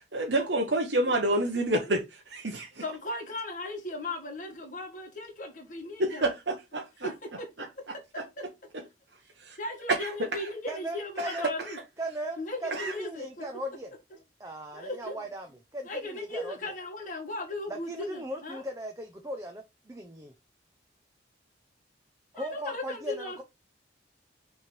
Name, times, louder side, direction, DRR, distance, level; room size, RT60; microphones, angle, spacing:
voice 1, 0.1-2.7 6.7-7.1 9.5-9.6 11.2-11.4 12.7-12.9, right 1 dB, 65° right, 1.2 m, -28 dB
voice 2, 2.8-6.3 7.0-8.5 9.6-11.8 12.4-13.5 14.7-15.3 15.8-18.6 22.3-23.4, left 2 dB, 40° left, 1.9 m, -37 dB
voice 3, 10.7-11.5 12.0-13.9 14.4-16.6 17.7-20.3 22.3-23.4, right 1 dB, 15° right, 0.7 m, -38 dB
6.2 x 3.5 x 4.5 m
head